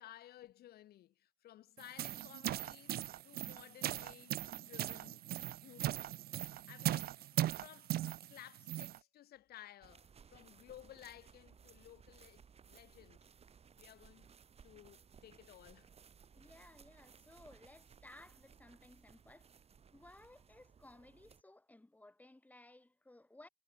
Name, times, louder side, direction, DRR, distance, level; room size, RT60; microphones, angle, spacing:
voice 1, 0.0-5.2 5.5-6.1 6.7-8.0 8.3-13.3 13.8-14.3 14.6-15.9, left 13 dB, 70° left, 5.6 m, -57 dB
sound 1, 1.8-9.0, right 13 dB, 65° right, 1.3 m, -39 dB
sound 2, 9.8-21.4, right 6 dB, 35° right, 5.1 m, -62 dB
voice 2, 16.4-19.5 19.9-23.5, left 2 dB, 10° left, 5.6 m, -59 dB
cardioid pair, 110°, 17 cm